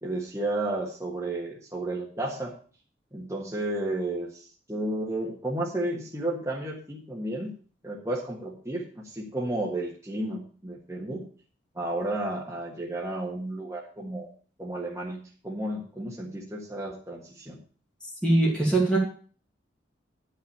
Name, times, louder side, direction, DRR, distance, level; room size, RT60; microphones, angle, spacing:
voice 1, 0.0-2.5 3.1-7.5 7.8-11.3 11.7-14.3 14.6-17.6, right 1 dB, 15° right, -4 dB, 1.6 m, -32 dB
voice 2, 18.2-19.0, right 2 dB, 5° left, -5 dB, 2.5 m, -21 dB
11.0 x 5.7 x 6.8 m, 0.42 s
head